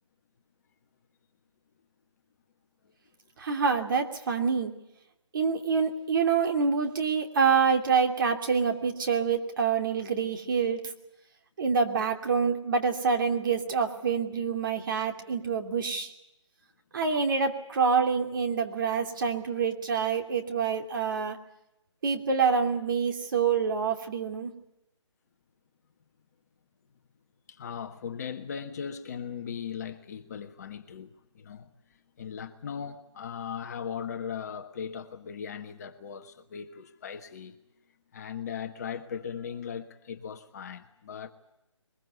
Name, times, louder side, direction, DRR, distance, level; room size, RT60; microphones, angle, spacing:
voice 1, 3.4-4.7 5.3-10.9 11.6-16.1 16.9-21.4 22.0-24.5, right 5 dB, 40° right, 2.8 m, -26 dB
voice 2, 27.5-31.7 32.2-37.5 38.1-41.3, left 7 dB, 35° left, 1.4 m, -38 dB
22.0 x 21.5 x 8.2 m
figure-of-eight pair, 160°, 16 cm